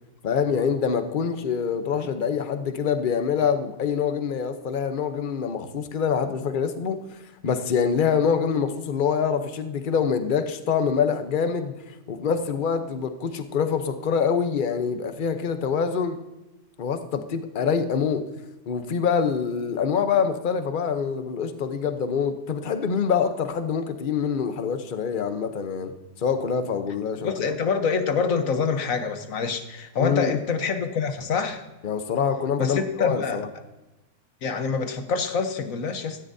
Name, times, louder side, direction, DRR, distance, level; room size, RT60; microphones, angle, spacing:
voice 1, 0.2-16.2 16.8-18.3 18.7-27.3 30.0-30.4 31.8-33.5, left 6 dB, 40° left, 9 dB, 0.8 m, -25 dB
voice 2, 27.2-31.7 32.6-33.4 34.4-36.2, left 5 dB, 60° left, 8 dB, 1.3 m, -26 dB
17.5 x 13.5 x 2.7 m, 1.0 s
omnidirectional pair, 1.7 m